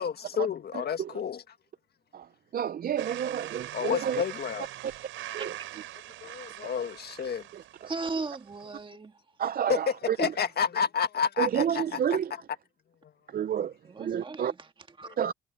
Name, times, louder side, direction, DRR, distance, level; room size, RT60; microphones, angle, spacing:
voice 1, 0.0-1.4 3.7-4.7 6.2-7.4 9.7-9.8 10.2-12.0, left 7 dB, 55° left, 1.8 m, -30 dB
voice 2, 0.7-1.2 2.1-4.2 4.8-4.9 5.3-5.5 6.6-6.7 7.5-7.9 9.4-10.3 11.4-12.3 13.3-14.5 15.2-15.3, right 9 dB, 45° right, 0.6 m, -30 dB
sound 1, 3.0-8.8, right 14 dB, 90° right, 5.3 m, -42 dB
voice 3, 7.9-9.2 13.9-14.7 15.0-15.2, right 3 dB, 25° right, 1.7 m, -37 dB
cardioid pair, 90°, 20 cm